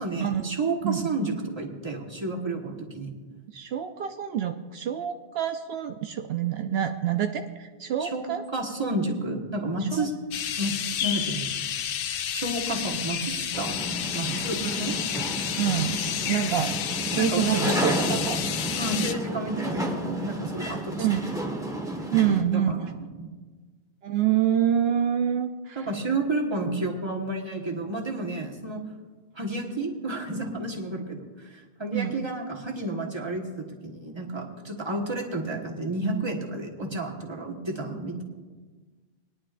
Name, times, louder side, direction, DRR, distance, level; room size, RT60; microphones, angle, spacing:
voice 1, 0.0-3.1 8.0-10.1 10.6-11.4 12.3-13.8 14.1-15.0 17.1-17.9 18.8-21.1 22.3-23.3 25.7-28.8 29.3-38.2, right 2 dB, 25° right, 0 dB, 1.4 m, -31 dB
voice 2, 3.5-8.4 9.8-10.1 14.6-14.8 15.6-16.8 17.1-18.4 21.0-21.3 22.1-22.7 24.0-25.9 31.9-32.3, right 9 dB, 75° right, 6 dB, 0.8 m, -27 dB
sound 1, 10.3-19.1, left 9 dB, 65° left, 0.7 m, -30 dB
sound 2, 13.5-22.4, equal, 5° right, 1.1 m, -32 dB
21.5 x 11.0 x 2.5 m, 1.4 s
omnidirectional pair, 1.1 m